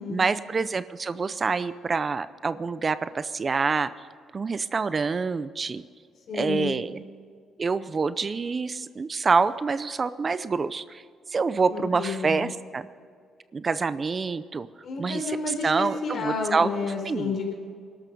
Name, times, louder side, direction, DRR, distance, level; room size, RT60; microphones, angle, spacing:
voice 1, 0.1-3.9 4.3-5.8 6.3-7.0 7.6-11.0 11.3-12.8 13.5-14.7 15.0-15.4 15.6-16.7 17.0-17.4, right 4 dB, 35° right, 14 dB, 0.6 m, -26 dB
voice 2, 6.3-6.8 11.7-12.5 14.8-17.5, left 4 dB, 60° left, 2 dB, 4.3 m, -30 dB
21.0 x 12.5 x 5.3 m, 2.2 s
cardioid pair, 90°, 0 cm